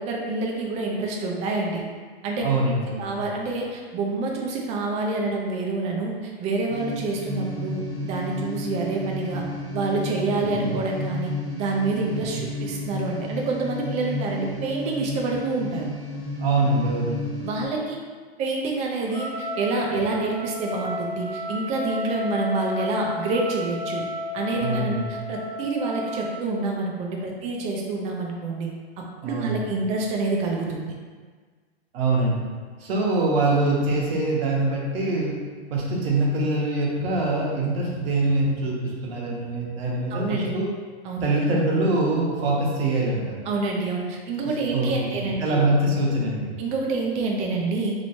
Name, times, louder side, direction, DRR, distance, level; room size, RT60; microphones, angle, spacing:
voice 1, 0.0-1.8 2.2-2.4 3.0-9.4 9.7-11.3 11.6-15.9 17.4-18.0 18.4-24.0 24.3-28.7 29.2-30.9 40.1-40.5 41.0-41.3 43.5-45.6 46.6-47.9, right 3 dB, 20° right, 0 dB, 0.4 m, -27 dB
voice 2, 2.4-3.2 10.5-10.8 12.2-12.4 16.4-17.3 24.6-25.1 29.2-29.7 31.9-32.5 32.8-35.3 35.7-40.7 41.2-43.4 44.4-46.5, right 2 dB, 70° right, -3 dB, 1.0 m, -24 dB
sound 1, 6.7-17.6, left 1 dB, 5° left, 1.0 m, -32 dB
Trumpet, 19.1-26.4, left 1 dB, 55° left, 1.3 m, -33 dB
3.1 x 3.0 x 2.7 m, 1.5 s
hypercardioid pair, 130°, 32 cm